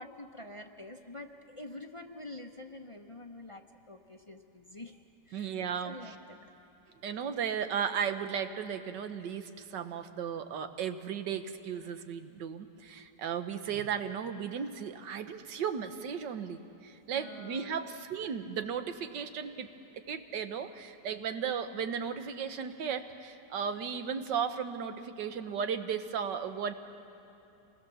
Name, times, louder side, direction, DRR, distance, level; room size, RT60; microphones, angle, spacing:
voice 1, 0.0-6.4 17.1-17.9, left 2 dB, 25° left, 4 dB, 0.7 m, -47 dB
voice 2, 5.3-5.9 7.0-19.7 20.1-26.7, right 7 dB, 85° right, 9 dB, 1.7 m, -35 dB
27.5 x 20.0 x 7.0 m, 3.0 s
omnidirectional pair, 1.9 m